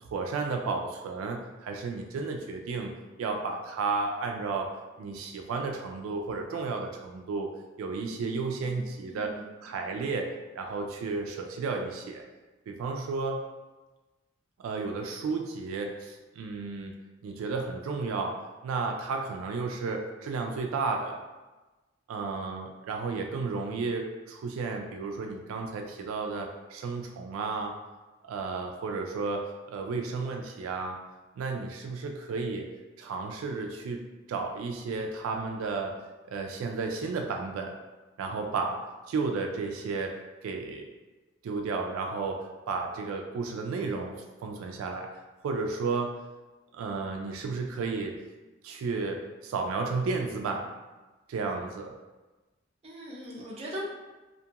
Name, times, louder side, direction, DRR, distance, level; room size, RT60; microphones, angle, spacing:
voice 1, 0.0-2.9 3.2-7.5 7.8-9.4 9.6-10.3 10.6-12.2 12.7-13.4 14.6-16.9 17.2-21.2 22.1-27.7 28.2-31.0 31.4-32.7 33.0-34.0 34.3-36.0 36.2-37.7 38.2-40.8 41.4-45.1 45.4-46.2 46.7-48.2 48.6-50.7 51.3-51.9 53.4-53.5, right 4 dB, 85° right, 3 dB, 0.3 m, -33 dB
voice 2, 8.5-9.5 52.8-53.8, equal, 30° right, -5 dB, 0.6 m, -41 dB
2.5 x 2.3 x 2.8 m, 1.2 s
head